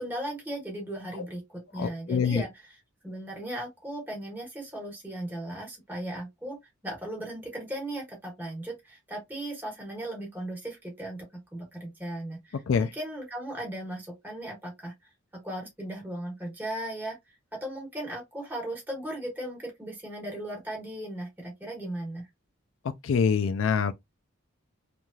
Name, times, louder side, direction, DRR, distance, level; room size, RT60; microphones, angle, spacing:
voice 1, 0.0-2.8 3.0-6.6 6.8-22.3, right 1 dB, 10° right, 1.1 m, -37 dB
voice 2, 1.8-2.4 12.7-12.9 23.0-23.9, left 6 dB, 65° left, 0.4 m, -25 dB
3.1 x 2.6 x 2.3 m
head